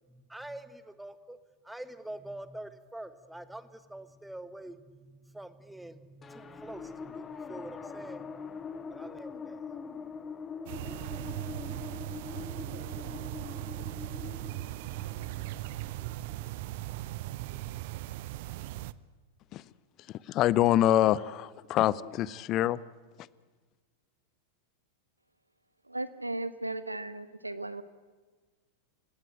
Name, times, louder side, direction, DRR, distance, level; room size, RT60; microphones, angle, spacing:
voice 1, 0.1-1.4 1.6-9.9, right 1 dB, 5° right, 12 dB, 1.4 m, -46 dB
sound 1, 6.2-16.9, left 5 dB, 20° left, 1.6 m, -43 dB
sound 2, 10.7-18.9, right 16 dB, 50° right, 0.6 m, -38 dB
voice 2, 20.3-22.8, left 13 dB, 35° left, 21 dB, 0.7 m, -25 dB
voice 3, 25.9-27.8, right 2 dB, 85° right, 14 dB, 1.1 m, -36 dB
28.5 x 17.0 x 9.0 m, 1.4 s
figure-of-eight pair, 90°, 0 cm